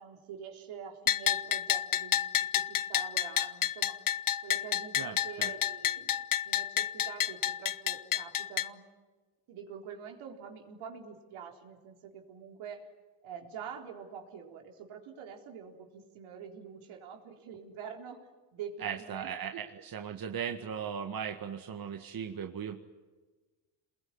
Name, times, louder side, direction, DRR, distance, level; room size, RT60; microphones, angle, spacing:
voice 1, 0.0-2.2 2.5-3.9 4.4-8.8 9.5-12.9 13.2-18.2 18.5-19.6, right 7 dB, 75° right, 3 dB, 4.0 m, -46 dB
Bell, 1.1-8.7, left 11 dB, 40° left, 0.9 m, -30 dB
voice 2, 5.0-5.5 18.8-22.8, right 7 dB, 45° right, 6 dB, 1.8 m, -38 dB
27.5 x 21.0 x 9.7 m, 1.3 s
supercardioid pair, 75°, 49 cm